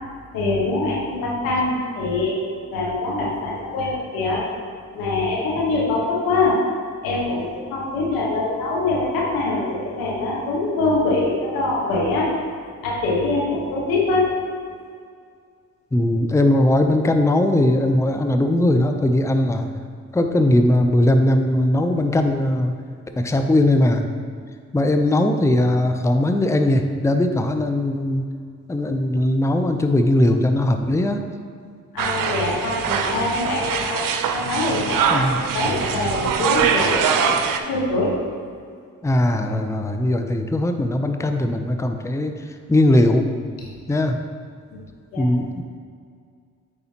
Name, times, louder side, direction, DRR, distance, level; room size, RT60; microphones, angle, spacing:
voice 1, 0.3-2.4 2.7-4.5 4.9-6.7 7.0-12.3 12.8-14.3 31.9-34.1 34.3-35.3 35.5-38.1 44.7-44.8 45.1-45.3, left 2 dB, 90° left, -3 dB, 1.4 m, -23 dB
voice 2, 15.9-19.7 20.1-22.7 23.2-24.1 24.7-28.2 28.7-31.2 35.1-35.4 39.0-42.3 42.7-43.3 43.9-44.2 45.2-45.6, left 1 dB, 10° left, 6 dB, 0.6 m, -19 dB
sound 1, 32.0-37.6, right 7 dB, 70° right, 0.6 m, -23 dB
9.0 x 4.9 x 2.9 m, 2.2 s
supercardioid pair, 45°, 34 cm